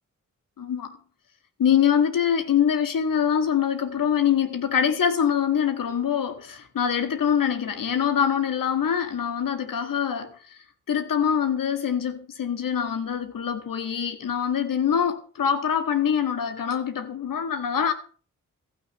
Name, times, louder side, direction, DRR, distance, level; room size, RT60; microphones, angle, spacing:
voice 1, 0.6-1.0 1.6-10.6 10.9-17.9, left 8 dB, 80° left, 1.7 m, -24 dB
15.0 x 6.6 x 6.9 m
supercardioid pair, 40°, 33 cm